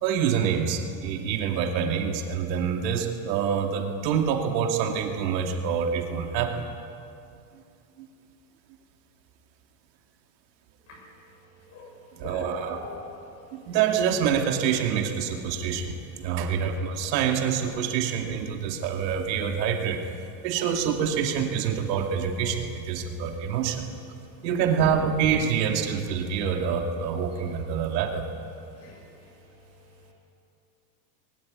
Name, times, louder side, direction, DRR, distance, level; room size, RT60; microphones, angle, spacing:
voice 1, 0.0-6.7 8.0-8.1 12.2-12.8 13.5-20.0 20.4-23.9 24.4-28.2, right 7 dB, 90° right, 3 dB, 2.7 m, -26 dB
voice 2, 12.2-13.2 28.8-29.0, left 2 dB, 30° left, 0 dB, 6.2 m, -39 dB
21.0 x 18.5 x 9.5 m, 2.5 s
cardioid pair, 175°, 50 cm